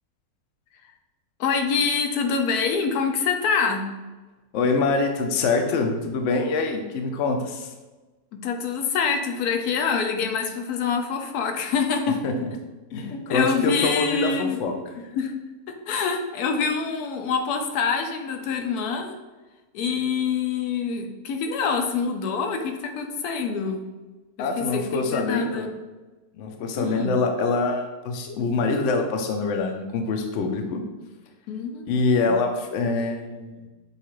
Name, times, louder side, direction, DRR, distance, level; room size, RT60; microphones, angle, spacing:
voice 1, 1.4-3.9 8.3-12.2 13.1-14.6 15.1-15.3 15.7-19.1 19.7-23.8 24.4-25.7 26.8-27.2 31.5-32.4, left 5 dB, 80° left, 4 dB, 1.1 m, -26 dB
voice 2, 4.5-7.7 12.2-12.5 12.9-14.7 24.4-25.7 26.4-30.8 31.9-33.7, left 3 dB, 65° left, 4 dB, 0.8 m, -25 dB
6.6 x 2.4 x 3.0 m, 1.2 s
omnidirectional pair, 1.6 m